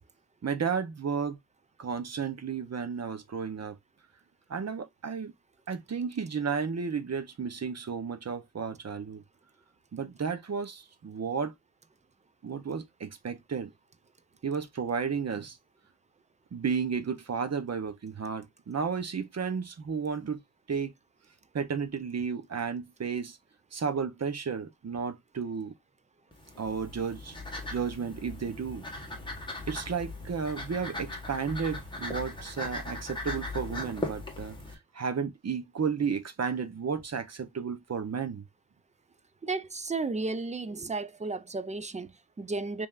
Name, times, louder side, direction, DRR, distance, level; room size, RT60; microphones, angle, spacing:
voice 1, 0.4-1.4 1.8-3.8 4.5-5.3 5.7-9.2 9.9-11.5 12.4-13.7 14.4-15.6 16.5-20.4 20.7-20.9 21.5-23.4 23.7-25.7 26.6-27.3 27.7-28.9 29.7-34.6 34.9-38.4, right 6 dB, 40° right, 0.7 m, -33 dB
sound 1, 26.3-34.7, left 2 dB, 10° left, 1.3 m, -39 dB
voice 2, 39.4-42.9, right 3 dB, 20° right, 0.3 m, -33 dB
5.4 x 3.5 x 2.4 m
wide cardioid pair, 155°, 38 cm